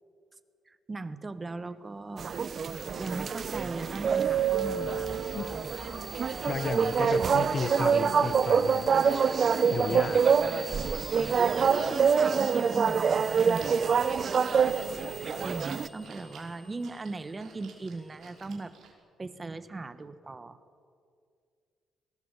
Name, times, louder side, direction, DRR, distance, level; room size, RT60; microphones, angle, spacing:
voice 1, 0.7-2.4 3.0-5.6 9.4-9.6 11.1-13.8 15.4-18.8 19.2-20.6, right 3 dB, 25° right, 12 dB, 1.3 m, -39 dB
sound 1, 2.2-18.5, left 1 dB, 10° left, 3.1 m, -49 dB
sound 2, 2.2-15.9, right 6 dB, 50° right, 0.8 m, -26 dB
voice 2, 5.3-6.0 6.5-8.9 9.4-10.3, left 5 dB, 45° left, 14 dB, 0.9 m, -34 dB
Chewing mastication, 13.1-18.9, right 5 dB, 65° right, 5.2 m, -53 dB
22.0 x 18.0 x 8.3 m, 2.3 s
cardioid pair, 90°, 0 cm